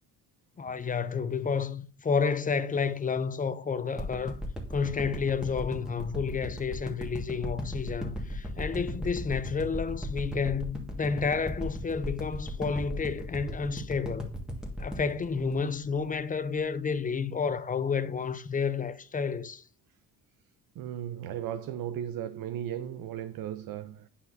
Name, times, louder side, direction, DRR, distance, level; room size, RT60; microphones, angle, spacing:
voice 1, 0.6-4.4 4.7-14.4 14.8-19.6, left 5 dB, 20° left, 0.5 m, -30 dB
sound 1, 4.0-16.3 16.7-16.8, equal, ahead, 1.6 m, -36 dB
voice 2, 20.8-24.1, right 10 dB, 60° right, 0.5 m, -36 dB
9.5 x 5.6 x 2.6 m
cardioid pair, 115°, 40 cm